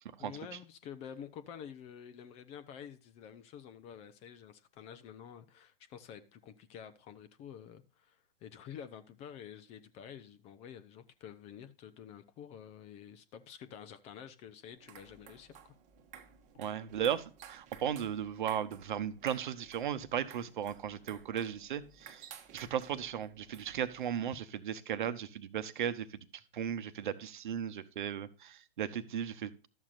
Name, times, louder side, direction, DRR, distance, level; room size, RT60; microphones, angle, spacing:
voice 1, 0.2-15.7, left 8 dB, 20° left, 0.7 m, -49 dB
sound 1, 14.7-24.1, right 8 dB, 25° right, 1.2 m, -55 dB
voice 2, 16.6-22.3 22.5-26.2 26.5-29.5, right 9 dB, 55° right, 1.0 m, -36 dB
12.5 x 7.3 x 2.5 m
figure-of-eight pair, 120°, 29 cm